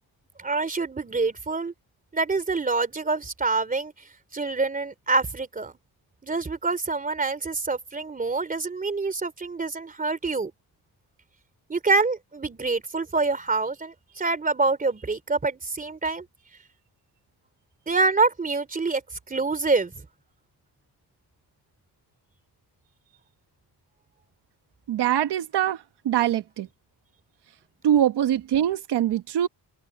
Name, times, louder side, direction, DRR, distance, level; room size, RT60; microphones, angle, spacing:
voice 1, 0.4-1.7 2.1-3.9 4.3-5.7 6.2-10.5 11.7-16.3 17.9-19.0 19.3-19.9, right 3 dB, 20° right, 3.0 m, -26 dB
voice 2, 24.9-26.7 27.8-29.5, right 11 dB, 85° right, 1.3 m, -23 dB
wide cardioid pair, 155°, 39 cm